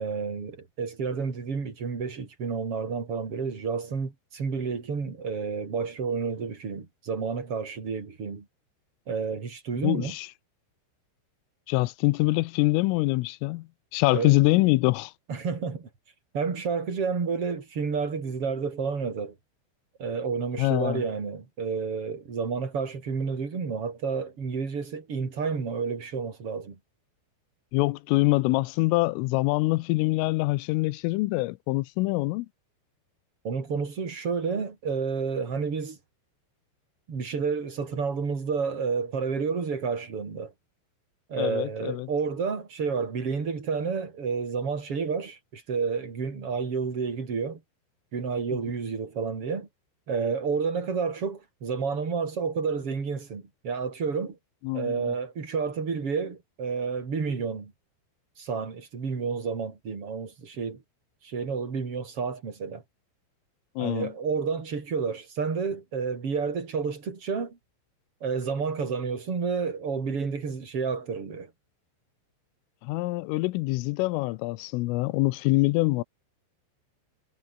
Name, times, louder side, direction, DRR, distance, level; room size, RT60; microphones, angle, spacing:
voice 1, 0.0-8.5 9.1-10.1 14.1-14.3 15.3-15.9 16.3-19.3 20.0-26.8 33.4-36.0 37.1-40.5 41.3-47.6 48.1-49.7 50.1-54.4 54.7-57.7 58.4-60.8 61.2-62.8 63.8-67.6 68.2-71.5, right 5 dB, 30° right, 4.4 m, -30 dB
voice 2, 9.8-10.3 11.7-15.1 20.6-21.0 27.7-32.5 41.4-42.1 54.6-55.1 63.8-64.1 72.8-76.0, left 21 dB, 90° left, 3.4 m, -25 dB
omnidirectional pair, 5.7 m